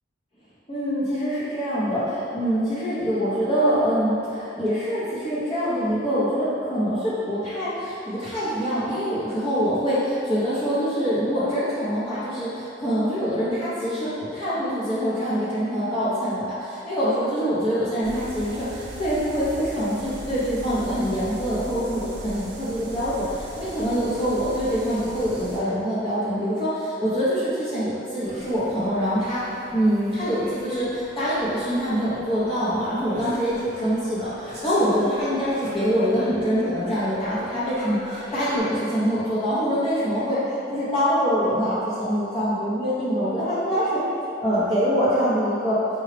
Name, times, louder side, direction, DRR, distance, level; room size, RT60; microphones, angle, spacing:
voice 1, 0.7-29.4 29.7-44.0 44.4-45.8, equal, 30° left, -12 dB, 0.6 m, -24 dB
sound 1, 18.0-25.6, right 1 dB, 85° right, 0.6 m, -39 dB
sound 2, 28.2-38.6, equal, 35° right, 0.8 m, -41 dB
4.7 x 2.2 x 3.3 m, 2.7 s
head